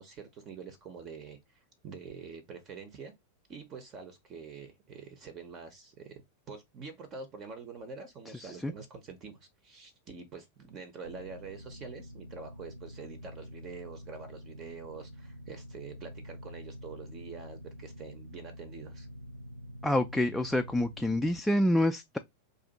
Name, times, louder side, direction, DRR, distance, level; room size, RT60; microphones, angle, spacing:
voice 1, 0.0-3.1 3.5-6.2 6.5-19.1, right 5 dB, 30° right, 0.7 m, -46 dB
voice 2, 8.4-8.7 19.8-22.2, left 1 dB, 5° left, 0.3 m, -27 dB
sound 1, 11.0-21.4, equal, 90° left, 0.4 m, -47 dB
2.6 x 2.4 x 4.0 m
figure-of-eight pair, 90°, 0 cm